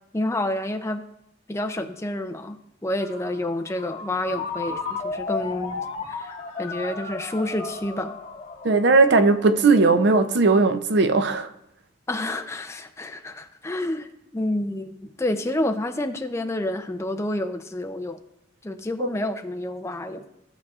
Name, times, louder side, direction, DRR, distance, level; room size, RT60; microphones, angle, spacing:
voice 1, 0.1-1.0 1.5-6.3 6.6-8.1 12.1-18.2 18.6-20.2, left 1 dB, 15° left, 0.5 m, -29 dB
Ringtone, 3.0-10.5, left 4 dB, 35° left, 1.6 m, -34 dB
voice 2, 8.6-11.5 19.0-19.1, right 3 dB, 65° right, 0.5 m, -18 dB
15.0 x 6.2 x 2.4 m
head